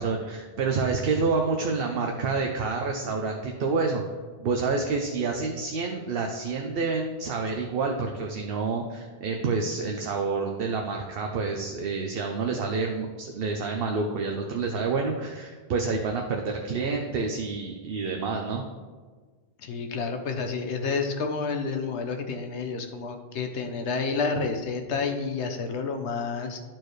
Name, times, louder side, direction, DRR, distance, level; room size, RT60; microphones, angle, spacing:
voice 1, 0.0-4.0 4.4-18.6, right 4 dB, 60° right, 2 dB, 0.8 m, -28 dB
voice 2, 19.6-26.6, left 4 dB, 80° left, 5 dB, 1.1 m, -30 dB
12.0 x 4.4 x 3.2 m, 1.4 s
omnidirectional pair, 1.1 m